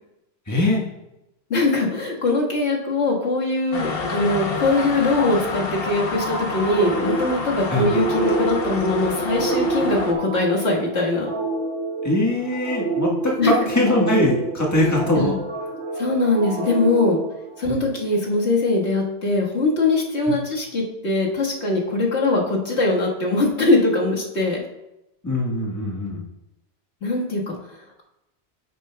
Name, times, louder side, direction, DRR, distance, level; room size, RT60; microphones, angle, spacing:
voice 1, 0.5-0.8 4.0-4.1 7.7-7.9 12.0-15.3 17.7-17.8 25.2-26.2, left 1 dB, 15° left, -2 dB, 1.3 m, -21 dB
voice 2, 1.5-11.3 13.4-13.5 15.1-15.4 16.0-17.2 17.6-24.6 27.0-27.5, left 2 dB, 90° left, -3 dB, 1.9 m, -21 dB
sound 1, 3.7-10.1, left 4 dB, 60° left, 1.1 m, -28 dB
sound 2, 6.7-18.1, right 2 dB, 85° right, 2.5 m, -28 dB
9.3 x 9.1 x 2.2 m, 0.91 s
omnidirectional pair, 1.1 m